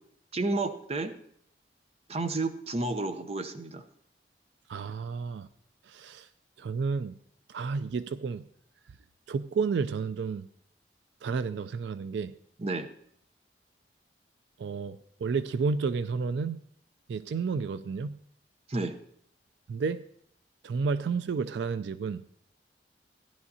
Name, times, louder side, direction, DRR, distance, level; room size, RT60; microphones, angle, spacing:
voice 1, 0.3-1.1 2.1-3.8 12.6-12.9 18.7-18.9, right 2 dB, 35° right, 9 dB, 0.7 m, -31 dB
voice 2, 4.7-5.5 5.9-6.3 6.6-7.1 7.5-8.4 9.3-10.5 11.2-12.3 14.6-16.6 17.1-18.2 19.7-20.0 20.6-22.2, right 5 dB, 80° right, 14 dB, 0.3 m, -31 dB
15.5 x 10.5 x 2.8 m, 0.65 s
head